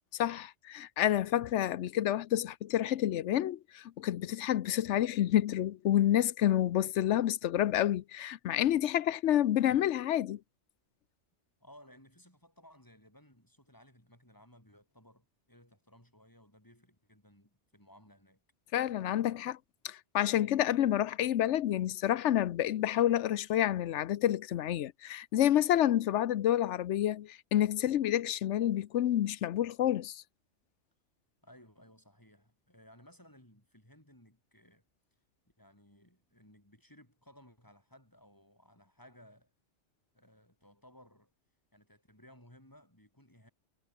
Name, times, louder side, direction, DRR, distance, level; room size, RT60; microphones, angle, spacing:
voice 1, 0.1-10.4 18.7-19.6 19.8-30.2, left 12 dB, 90° left, 1.0 m, -29 dB
voice 2, 11.6-18.4 31.4-34.8 35.6-39.5 40.1-41.3 41.7-43.5, equal, 15° left, 7.8 m, -59 dB
omnidirectional pair, 1.2 m